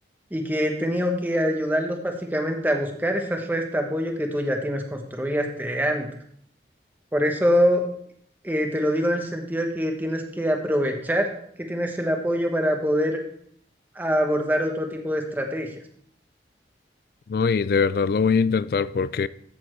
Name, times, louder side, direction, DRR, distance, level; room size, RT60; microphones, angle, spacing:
voice 1, 0.3-6.1 7.1-7.9 8.4-11.3 11.6-13.2 14.0-15.7, equal, 10° right, 1.0 m, -24 dB
voice 2, 17.3-19.3, left 5 dB, 55° left, 0.3 m, -22 dB
14.0 x 6.9 x 3.1 m
head